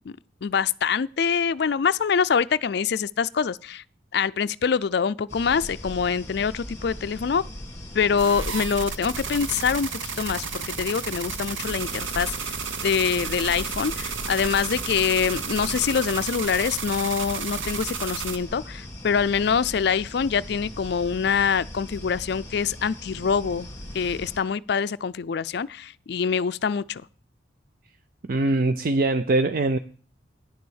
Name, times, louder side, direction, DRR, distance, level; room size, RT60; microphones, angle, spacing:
voice 1, 0.4-3.8 4.1-7.4 7.9-12.5 12.8-23.7 23.9-27.0, left 6 dB, 55° left, 0.4 m, -25 dB
sound 1, 5.3-24.4, left 1 dB, 15° left, 2.2 m, -39 dB
sound 2, 8.2-18.4, right 6 dB, 80° right, 1.0 m, -33 dB
voice 2, 28.3-29.8, right 2 dB, 50° right, 0.4 m, -22 dB
10.5 x 6.8 x 6.4 m
head